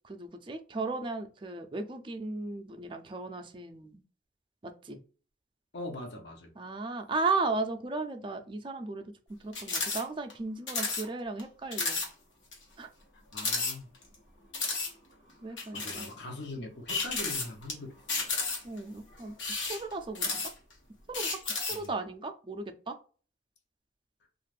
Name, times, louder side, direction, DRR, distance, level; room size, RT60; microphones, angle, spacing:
voice 1, 0.0-4.0 4.6-5.0 6.6-9.0 9.4-12.0 12.8-12.9 15.4-16.1 18.6-19.4 19.7-20.4 21.1-21.4 21.7-22.9, right 3 dB, 25° right, 0.4 m, -35 dB
voice 2, 5.7-6.5 13.3-13.9 15.7-17.9 21.7-21.9, left 1 dB, 60° left, 0.8 m, -41 dB
sound 1, 9.5-10.0 10.3-10.4 10.7-11.1 11.4-11.5 11.7-12.1 12.5-12.6 13.3-14.1 14.5-14.9 15.6-16.1 16.9-17.7 18.1-18.8 19.3-20.7 21.1-21.9, left 3 dB, 80° left, 1.1 m, -32 dB
2.5 x 2.4 x 3.2 m
head